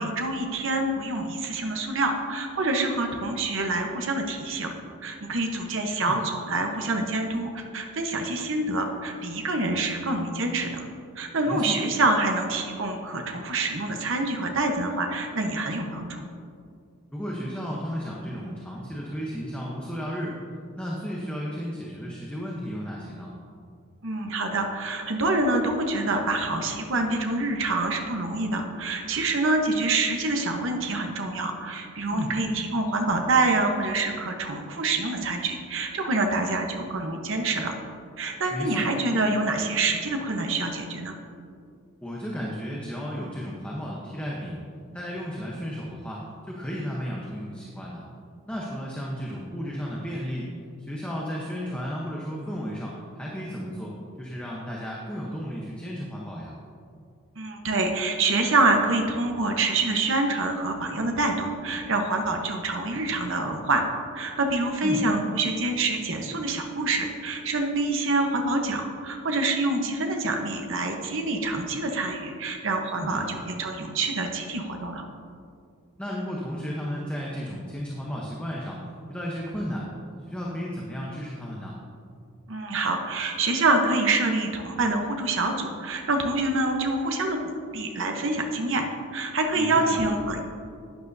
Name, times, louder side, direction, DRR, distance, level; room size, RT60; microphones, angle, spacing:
voice 1, 0.0-4.7 5.0-10.8 11.2-16.2 24.0-37.7 38.2-41.1 57.4-63.8 64.1-75.0 82.5-88.9 89.1-90.4, right 2 dB, 60° right, 3 dB, 1.0 m, -26 dB
voice 2, 11.5-11.8 17.1-20.4 20.7-23.3 32.1-32.4 38.5-38.9 42.0-44.6 44.9-48.0 48.5-50.5 50.8-56.5 64.8-65.1 73.0-73.2 76.0-78.8 79.1-79.9 80.2-81.8 89.5-90.0, equal, 5° left, -4 dB, 0.9 m, -33 dB
11.5 x 9.4 x 2.7 m, 2.4 s
head